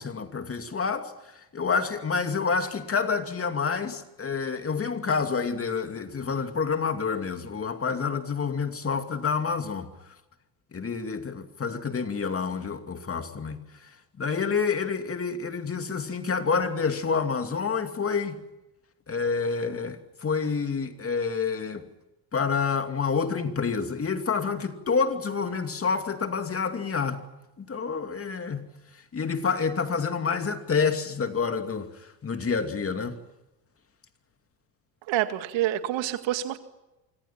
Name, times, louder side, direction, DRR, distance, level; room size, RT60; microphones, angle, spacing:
voice 1, 0.0-9.9 10.7-18.4 19.1-21.9 22.3-27.2 27.6-28.6 28.9-33.2, left 5 dB, 25° left, 2.6 m, -28 dB
voice 2, 35.1-36.6, right 13 dB, 65° right, 2.2 m, -27 dB
26.5 x 25.5 x 6.0 m
supercardioid pair, 85°, 49 cm